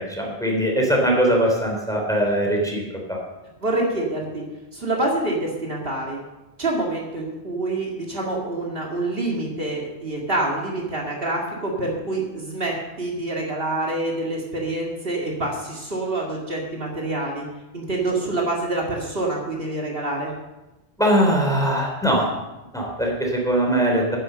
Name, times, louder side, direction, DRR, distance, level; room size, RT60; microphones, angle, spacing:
voice 1, 0.0-2.8 3.1-3.2 21.0-22.3 22.7-24.2, equal, 5° left, -1 dB, 3.3 m, -21 dB
voice 2, 3.6-4.4 4.7-6.2 6.6-17.4 17.7-20.3, right 2 dB, 55° right, -2 dB, 2.3 m, -26 dB
10.5 x 10.0 x 6.8 m, 1.0 s
omnidirectional pair, 1.1 m